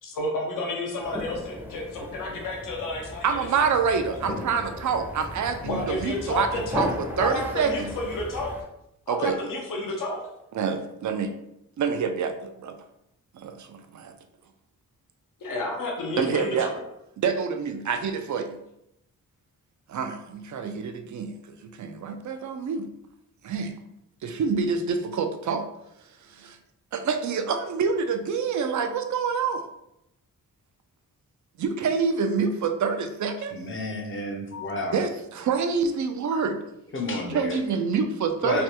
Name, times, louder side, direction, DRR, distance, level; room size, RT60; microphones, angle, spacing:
voice 1, 0.0-3.5 4.1-4.2 5.6-6.9 7.2-8.5 9.1-10.2 15.4-16.7, left 2 dB, 70° left, -1 dB, 0.8 m, -31 dB
sound 1, 1.0-8.6, left 1 dB, 5° right, 0.6 m, -37 dB
voice 2, 3.2-7.9 9.1-9.4 10.5-11.3 11.8-12.8 13.3-14.1 16.2-16.7 17.2-18.6 19.9-21.3 21.6-22.9 23.4-23.7 24.2-25.7 26.2-26.6 26.9-29.6 31.6-33.6 34.9-36.6 37.3-38.6, right 5 dB, 60° right, 7 dB, 0.4 m, -27 dB
voice 3, 33.5-35.0 36.9-37.6 38.4-38.6, left 2 dB, 35° left, 2 dB, 0.6 m, -30 dB
3.3 x 2.3 x 2.8 m, 0.82 s
cardioid pair, 70°, 34 cm